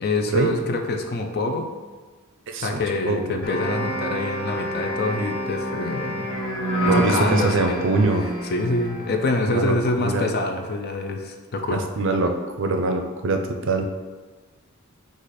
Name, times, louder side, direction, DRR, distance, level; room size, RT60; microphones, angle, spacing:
voice 1, 0.0-1.7 2.6-6.4 6.9-7.8 8.5-11.9, left 2 dB, 50° left, 4 dB, 0.5 m, -26 dB
voice 2, 2.5-2.8 3.0-3.4 6.8-8.2 9.5-10.3 11.7-13.9, right 3 dB, 60° right, 5 dB, 0.5 m, -23 dB
sound 1, 3.4-9.4, equal, 80° left, 1.2 m, -27 dB
4.8 x 2.4 x 4.1 m, 1.4 s
head